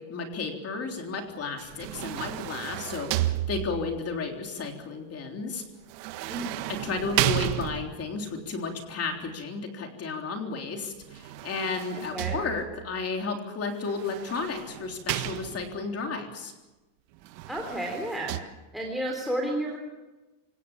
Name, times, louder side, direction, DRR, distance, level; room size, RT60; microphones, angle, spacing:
voice 1, 0.1-5.6 6.7-16.5, left 4 dB, 30° left, 3 dB, 3.7 m, -33 dB
sound 1, 1.6-4.0 5.9-8.2 11.0-12.9 13.9-15.9 17.2-18.4, right 15 dB, 80° right, 1.7 m, -32 dB
voice 2, 17.5-18.4 18.7-19.8, right 1 dB, ahead, 0 dB, 3.5 m, -31 dB
28.5 x 18.0 x 7.3 m, 1.1 s
supercardioid pair, 145°, 50 cm